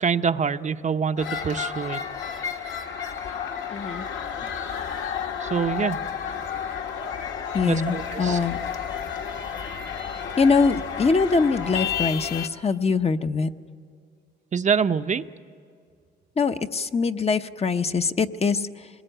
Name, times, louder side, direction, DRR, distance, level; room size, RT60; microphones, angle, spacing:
voice 1, 0.0-2.0 5.4-6.0 7.6-8.4 14.5-15.2, right 6 dB, 40° right, 9 dB, 0.7 m, -25 dB
sound 1, 1.2-12.5, left 7 dB, 75° left, 1.9 m, -31 dB
voice 2, 3.7-4.0 7.5-8.6 10.4-13.5 16.4-18.9, left 4 dB, 30° left, 8 dB, 0.9 m, -23 dB
24.5 x 20.0 x 9.1 m, 2.3 s
cardioid pair, 90°, 20 cm